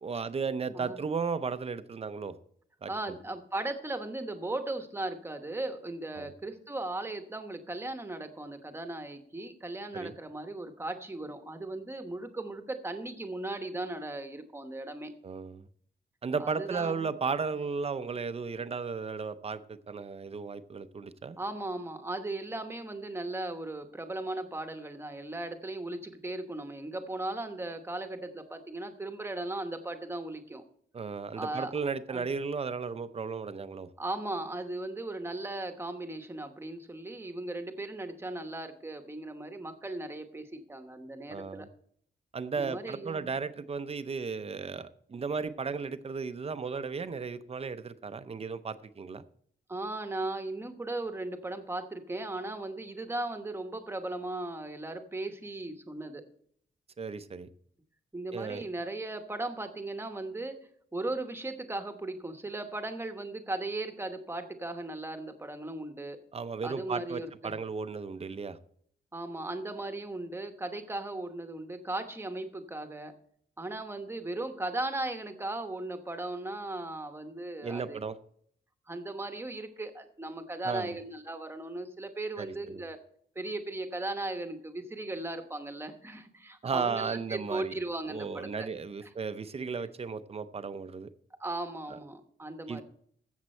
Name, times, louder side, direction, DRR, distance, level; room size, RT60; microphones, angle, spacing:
voice 1, 0.0-2.4 2.8-3.2 6.2-6.3 9.9-10.1 15.2-15.7 16.2-21.4 30.9-33.9 41.3-41.7 42.3-49.2 57.0-57.5 58.3-58.7 66.3-68.6 77.6-78.2 80.7-80.9 82.4-82.8 86.6-87.8 88.1-91.1 91.9-92.0 92.7-92.8, right 5 dB, 35° right, 12 dB, 0.6 m, -35 dB
voice 2, 2.9-15.1 16.4-17.1 21.4-30.6 31.4-31.7 32.1-32.3 34.0-41.7 42.6-43.3 49.7-56.2 58.1-60.6 60.9-66.2 66.6-67.6 69.1-73.1 73.6-78.0 78.9-83.0 83.3-88.7 89.0-89.1 91.4-92.8, right 2 dB, 15° right, 7 dB, 1.0 m, -37 dB
14.5 x 7.3 x 4.3 m, 0.64 s
wide cardioid pair, 170°, 18 cm